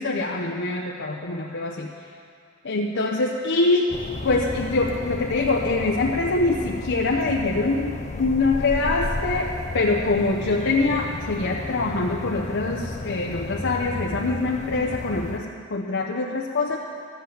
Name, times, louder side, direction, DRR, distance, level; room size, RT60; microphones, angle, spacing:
voice 1, 0.0-1.9 2.6-3.9 4.2-16.8, left 3 dB, 60° left, -2 dB, 0.8 m, -24 dB
sound 1, 3.9-15.4, left 2 dB, 35° left, 0.6 m, -33 dB
13.0 x 7.7 x 7.1 m, 2.4 s
head